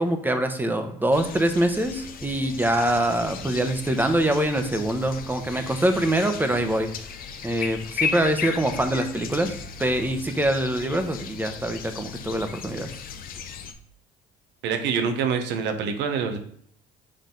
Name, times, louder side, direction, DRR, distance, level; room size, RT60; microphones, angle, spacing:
voice 1, 0.0-6.9 7.4-12.9, right 1 dB, 10° right, 6 dB, 1.0 m, -24 dB
sound 1, 1.1-13.7, left 6 dB, 50° left, 0.8 m, -36 dB
voice 2, 14.6-16.4, right 6 dB, 70° right, 7 dB, 1.0 m, -25 dB
6.5 x 3.9 x 3.9 m, 0.62 s
supercardioid pair, 85°, 18 cm